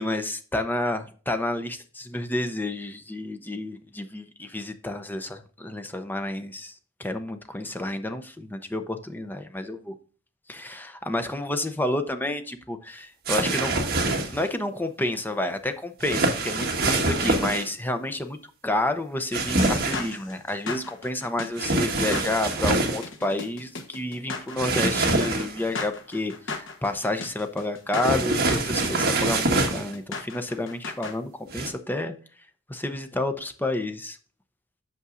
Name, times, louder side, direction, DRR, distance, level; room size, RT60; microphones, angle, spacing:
voice 1, 0.0-6.7 7.0-9.9 10.5-13.7 14.3-18.4 18.6-32.1 32.7-34.2, left 1 dB, 10° left, 0.7 m, -30 dB
sound 1, 13.3-14.5 16.0-17.7 19.3-20.1 21.6-23.0 24.6-25.7 28.0-29.9 31.5-31.7, right 2 dB, 50° right, 1.4 m, -25 dB
sound 2, 19.6-31.2, left 4 dB, 60° left, 1.2 m, -36 dB
8.2 x 6.1 x 2.5 m
head